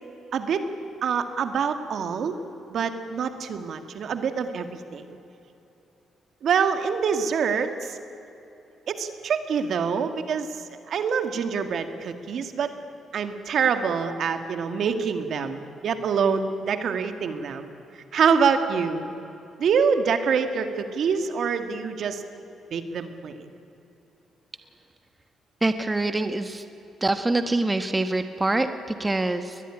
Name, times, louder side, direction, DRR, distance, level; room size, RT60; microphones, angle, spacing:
voice 1, 0.3-0.7 1.0-2.4 2.7-5.0 6.4-8.0 8.9-10.5 10.9-12.7 13.1-17.7 17.9-19.0 19.6-22.2 22.7-23.5, right 6 dB, 65° right, 8 dB, 2.0 m, -25 dB
voice 2, 25.6-26.6 27.0-29.6, right 2 dB, 15° right, 8 dB, 1.3 m, -25 dB
21.5 x 20.5 x 9.9 m, 3.0 s
cardioid pair, 90°, 0 cm